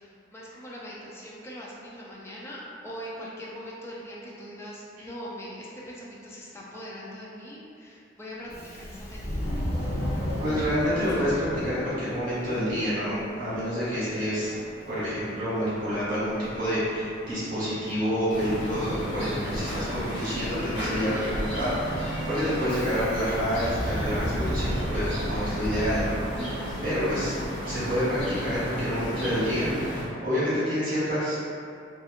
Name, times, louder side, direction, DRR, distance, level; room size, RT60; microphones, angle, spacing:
voice 1, 0.0-9.5, equal, 15° left, -5 dB, 0.4 m, -41 dB
Subway metro underground, 8.4-26.8, equal, 35° left, 0.8 m, -36 dB
voice 2, 10.4-14.5 14.9-27.3 27.6-29.9 30.2-31.4, equal, 50° right, -11 dB, 1.4 m, -28 dB
sound 1, 18.3-30.0, equal, 65° left, 0.9 m, -33 dB
2.8 x 2.4 x 2.4 m, 2.4 s
head